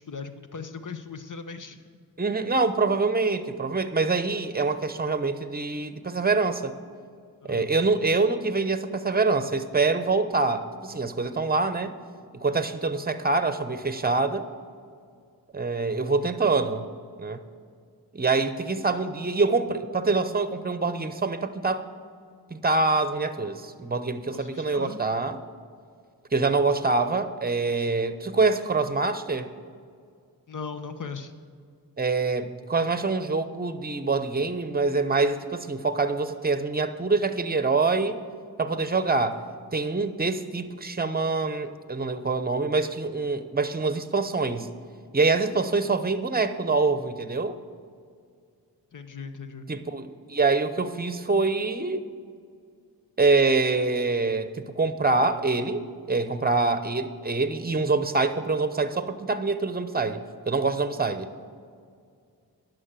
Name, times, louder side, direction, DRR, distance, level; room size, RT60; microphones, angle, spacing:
voice 1, 0.0-1.8 7.4-7.7 24.2-25.0 30.5-31.3 48.9-49.7, left 5 dB, 50° left, 8 dB, 1.0 m, -38 dB
voice 2, 2.2-6.8 7.4-11.9 12.3-14.5 15.5-16.9 17.2-17.4 18.1-21.8 22.5-25.4 26.3-29.5 32.0-38.2 38.6-39.4 39.7-44.7 45.1-47.6 49.7-52.0 53.2-61.3, right 3 dB, 25° right, 11 dB, 0.8 m, -25 dB
11.0 x 6.4 x 7.5 m, 2.2 s
cardioid pair, 45°, 39 cm